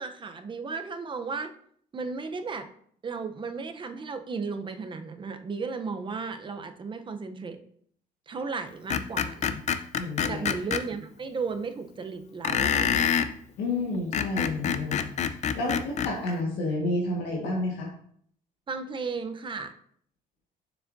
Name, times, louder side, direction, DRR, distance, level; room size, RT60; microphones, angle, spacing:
voice 1, 0.0-1.5 1.9-2.7 3.0-7.6 8.3-9.6 10.3-13.1 18.7-19.7, right 4 dB, 30° right, 8 dB, 0.7 m, -35 dB
Screech, 8.9-10.8 12.4-13.3 14.0-16.1, left 8 dB, 45° left, 0.5 m, -26 dB
voice 2, 9.2-9.6 10.0-10.5 13.6-15.1 15.5-17.9, left 2 dB, 85° left, -2 dB, 1.5 m, -30 dB
6.9 x 6.4 x 2.6 m, 0.62 s
cardioid pair, 110°, 17 cm